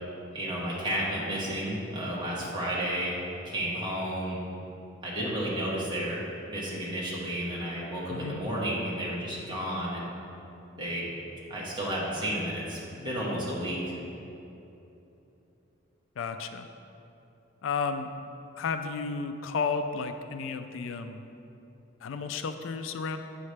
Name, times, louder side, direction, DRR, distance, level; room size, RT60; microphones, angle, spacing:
voice 1, 0.3-3.2 3.4-4.4 5.0-6.2 6.5-10.1 10.8-11.1 11.5-14.0, equal, 25° right, -6 dB, 1.5 m, -32 dB
voice 2, 8.1-8.4 16.2-16.7 17.6-18.1 18.6-21.3 22.0-23.2, left 5 dB, 75° left, 8 dB, 0.3 m, -32 dB
7.4 x 5.6 x 3.2 m, 2.9 s
head